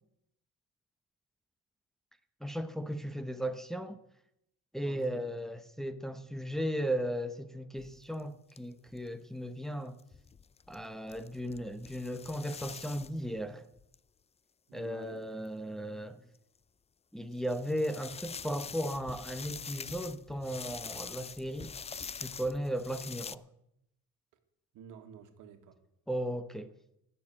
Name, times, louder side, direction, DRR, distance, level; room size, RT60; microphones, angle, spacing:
voice 1, 2.4-4.0 4.7-10.0 10.7-13.7 14.7-16.2 17.1-23.4 26.1-26.7, equal, ahead, 1.0 m, -36 dB
voice 2, 4.8-5.3 14.7-15.3 24.7-25.8, right 7 dB, 90° right, 1.6 m, -51 dB
sound 1, 7.8-8.2 8.5-8.6 8.9-9.1 10.0-14.0 15.5-15.6 16.4-16.5 17.3-23.4, left 6 dB, 20° left, 0.4 m, -45 dB
16.0 x 6.9 x 8.8 m
cardioid pair, 90°, 30 cm